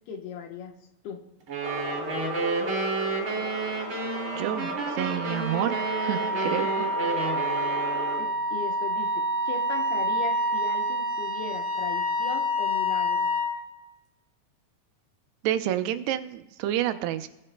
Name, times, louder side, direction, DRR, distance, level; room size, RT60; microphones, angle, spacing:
voice 1, 0.1-0.7 1.0-1.2 6.8-6.9 8.2-13.3, left 5 dB, 75° left, 3 dB, 3.0 m, -38 dB
sound 1, 1.5-8.3, right 4 dB, 35° right, 2.8 m, -31 dB
sound 2, 1.6-8.2, left 1 dB, 30° left, 2.0 m, -35 dB
Wind instrument woodwind instrument, 4.1-13.6, equal, 50° left, 4.2 m, -28 dB
voice 2, 4.3-6.7 15.4-17.3, right 12 dB, 85° right, 9 dB, 2.8 m, -29 dB
20.5 x 11.0 x 2.2 m, 1.0 s
omnidirectional pair, 4.6 m